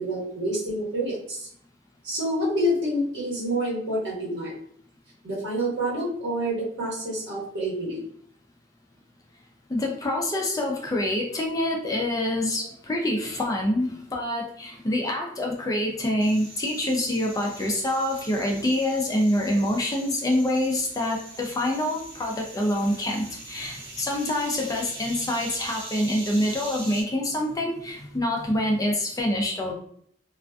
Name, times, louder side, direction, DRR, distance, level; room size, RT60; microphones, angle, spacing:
voice 1, 0.0-1.5 2.0-4.5 5.2-8.0, equal, 70° right, -6 dB, 1.2 m, -28 dB
voice 2, 9.7-29.7, left 1 dB, 20° left, 0 dB, 0.4 m, -26 dB
sound 1, 16.2-27.0, right 2 dB, 30° right, 1.5 m, -42 dB
2.4 x 2.3 x 2.2 m, 0.62 s
head